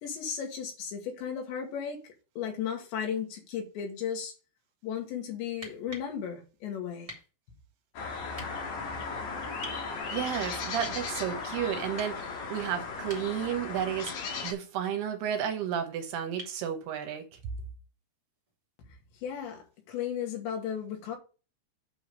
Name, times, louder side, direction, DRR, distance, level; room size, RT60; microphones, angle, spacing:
voice 1, 0.0-4.3 4.8-7.1 19.2-21.2, left 8 dB, 75° left, 4.3 m, -35 dB
sound 1, 5.5-6.1 7.1-7.3 8.3-8.5 9.6-9.8 10.8-11.0 12.0-12.2 12.9-13.5 14.1-14.3 16.4-16.6 18.5-18.6, right 1 dB, 10° right, 1.9 m, -45 dB
sound 2, 7.9-14.5, left 4 dB, 55° left, 3.0 m, -36 dB
voice 2, 10.1-17.2, right 9 dB, 75° right, 2.8 m, -32 dB
8.8 x 5.0 x 5.2 m
omnidirectional pair, 5.1 m